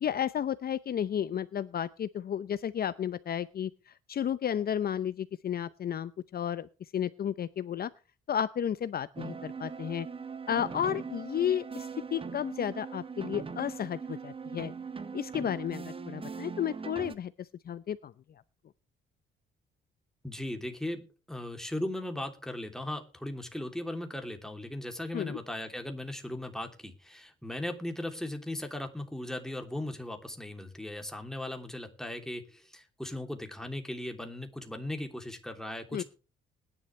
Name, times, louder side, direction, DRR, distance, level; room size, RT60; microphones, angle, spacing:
voice 1, 0.0-6.7 6.9-7.9 8.3-10.1 10.5-14.7 15.1-18.1 25.1-25.4 35.9-36.0, left 9 dB, 50° left, 15 dB, 0.7 m, -32 dB
sound 1, 9.2-17.2, right 5 dB, 25° right, 1.2 m, -40 dB
voice 2, 20.2-21.0 21.3-36.0, left 1 dB, ahead, 4 dB, 3.0 m, -38 dB
20.0 x 11.0 x 3.3 m, 0.33 s
cardioid pair, 90°, 20 cm